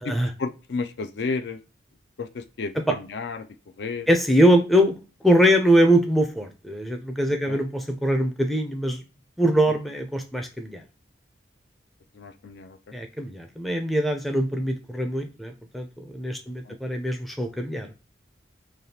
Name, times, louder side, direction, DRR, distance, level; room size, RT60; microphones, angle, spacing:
voice 1, 0.0-1.6 2.2-3.5 3.8-4.1 7.5-7.6 9.7-9.8 12.1-12.8 16.7-16.8, left 4 dB, 70° left, 9 dB, 0.4 m, -32 dB
voice 2, 4.1-4.9 5.2-9.0 9.4-10.8 12.9-17.9, equal, ahead, 4 dB, 0.4 m, -22 dB
3.4 x 2.3 x 2.6 m, 0.32 s
head